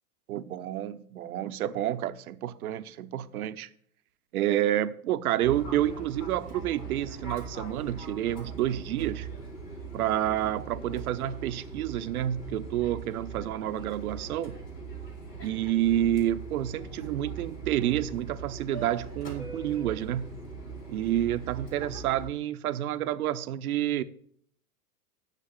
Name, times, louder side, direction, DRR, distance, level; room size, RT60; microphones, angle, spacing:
voice 1, 0.3-3.7 4.3-9.3 9.9-14.6 15.4-20.3 20.9-24.0, right 12 dB, 65° right, 0.8 m, -29 dB
Fixed-wing aircraft airplane, 5.4-22.3, right 4 dB, 90° left, 3.9 m, -41 dB
9.0 x 6.4 x 7.9 m
hypercardioid pair, 100°, 46 cm